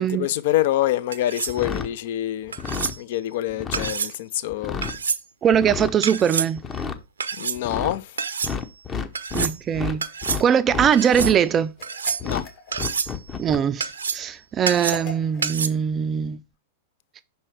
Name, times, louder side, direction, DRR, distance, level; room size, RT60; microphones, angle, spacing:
voice 1, 0.0-2.5 3.0-4.8 7.4-8.2 12.2-12.5, left 13 dB, 60° left, 0.4 m, -26 dB
sound 1, 1.1-1.6 2.5-3.0 3.7-4.2 4.8-5.2 6.0-6.5 7.2-7.6 8.2-8.5 9.1-9.6 10.0-10.4 10.9-11.3 11.8-12.4 12.7-13.2 13.8-14.3 14.7-15.1 15.4-15.7, right 6 dB, 90° right, 0.5 m, -28 dB
sound 2, 1.5-1.9 2.5-2.9 3.5-3.9 4.5-5.0 5.5-5.9 6.6-7.0 7.6-8.0 8.4-10.0 10.2-11.4 12.2-12.4 12.7-13.6, left 6 dB, 25° left, 0.8 m, -30 dB
voice 2, 5.4-6.6 9.3-10.0 10.4-11.7 13.4-16.4, right 8 dB, 30° right, 0.3 m, -21 dB
sound 3, 11.8-13.1 14.7-15.5, left 4 dB, 45° left, 1.7 m, -40 dB
5.5 x 4.3 x 4.9 m
hypercardioid pair, 105°, 0 cm